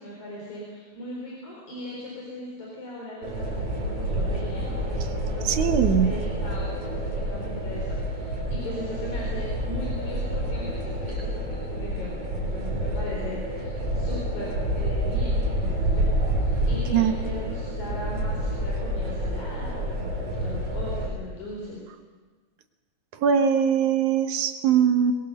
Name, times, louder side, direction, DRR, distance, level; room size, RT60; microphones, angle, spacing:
voice 1, 0.0-21.8, left 1 dB, 80° left, -3 dB, 5.6 m, -39 dB
sound 1, 3.2-21.1, right 1 dB, 55° right, 4.5 m, -28 dB
voice 2, 5.4-6.1 16.9-17.2 23.2-25.1, right 8 dB, 90° right, 7 dB, 2.7 m, -21 dB
22.5 x 21.5 x 6.6 m, 1.4 s
omnidirectional pair, 3.3 m